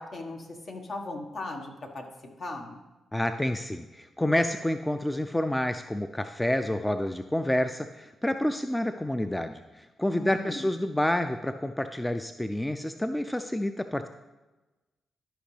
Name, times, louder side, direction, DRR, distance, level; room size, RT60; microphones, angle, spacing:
voice 1, 0.0-2.0 2.4-2.8 10.1-10.6, left 2 dB, 55° left, 2 dB, 1.6 m, -38 dB
voice 2, 3.1-14.1, left 1 dB, 10° left, 8 dB, 0.5 m, -29 dB
12.5 x 5.2 x 3.4 m, 1.1 s
supercardioid pair, 55°, 0 cm